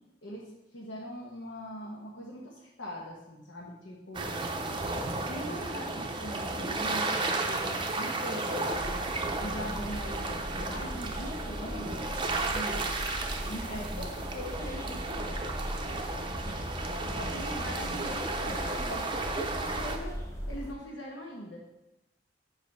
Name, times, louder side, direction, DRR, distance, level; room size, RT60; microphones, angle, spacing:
voice 1, 0.7-4.4 5.2-8.8 9.4-12.9 13.5-15.5 15.8-16.0 16.3-16.6 17.0-20.2 20.5-21.6, equal, 85° left, -2 dB, 1.0 m, -41 dB
sound 1, 4.1-20.0, right 2 dB, 25° right, 0.6 m, -33 dB
sound 2, 8.7-20.7, equal, 15° left, 0.7 m, -39 dB
5.0 x 4.9 x 5.4 m, 0.96 s
head